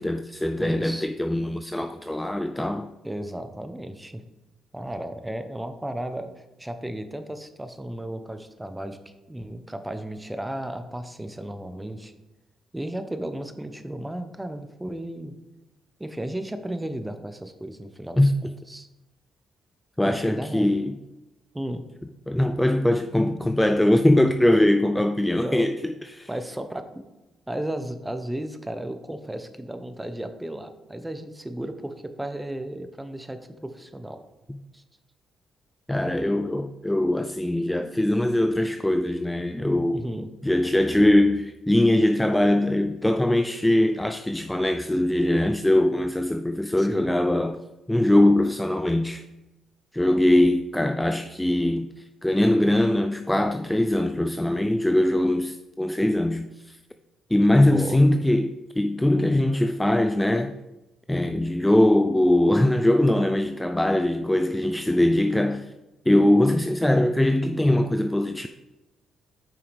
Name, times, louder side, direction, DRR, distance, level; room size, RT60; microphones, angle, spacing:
voice 1, 0.0-2.9 18.2-18.3 20.0-20.9 22.3-26.3 34.5-34.6 35.9-40.1 40.4-47.6 47.9-49.2 49.9-56.8 57.3-60.5 61.1-65.7 66.1-68.5, left 1 dB, 5° left, 0.4 m, -22 dB
voice 2, 0.6-1.1 3.0-4.2 4.7-12.1 12.7-15.3 16.0-18.3 18.7-18.9 20.0-20.7 21.5-21.8 24.9-25.0 25.4-25.7 26.3-27.1 27.5-34.2 34.7-34.8 39.9-40.3 46.8-47.1 57.6-58.0, right 1 dB, 10° right, 0.8 m, -34 dB
9.1 x 5.6 x 3.4 m
cardioid pair, 90°, 0 cm